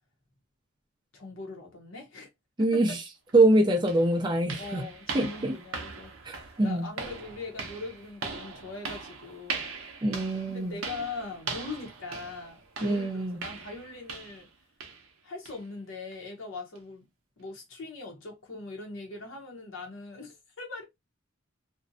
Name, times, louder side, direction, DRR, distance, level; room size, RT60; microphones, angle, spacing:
voice 1, 1.1-2.3 2.6-2.8 4.6-9.7 10.1-10.2 10.5-13.1 13.4-14.5 15.2-17.1 17.4-20.8, left 3 dB, 65° left, 0.7 m, -41 dB
voice 2, 2.6-3.0 3.3-4.9 5.1-5.6 6.2-6.9 10.0-10.7 12.8-13.4, right 2 dB, 20° right, 0.4 m, -24 dB
sound 1, 3.3-3.4 3.9-14.5 14.8-15.1 15.5-15.6 16.1-16.2 16.8-16.9, right 4 dB, 75° right, 0.6 m, -40 dB
2.5 x 2.0 x 2.6 m
head